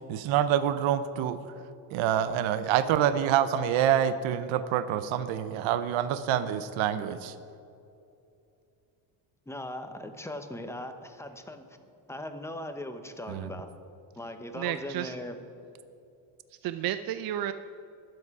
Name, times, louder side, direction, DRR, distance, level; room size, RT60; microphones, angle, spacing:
voice 1, 0.1-1.4 1.9-7.3 13.3-13.5, right 10 dB, 75° right, 12 dB, 0.8 m, -26 dB
voice 2, 9.5-11.7 12.1-13.7 14.2-15.4, left 1 dB, 5° left, 7 dB, 0.8 m, -39 dB
voice 3, 14.5-15.1 16.6-17.5, right 12 dB, 50° right, 11 dB, 0.5 m, -31 dB
22.0 x 7.9 x 4.8 m, 2.7 s
cardioid pair, 145°, 47 cm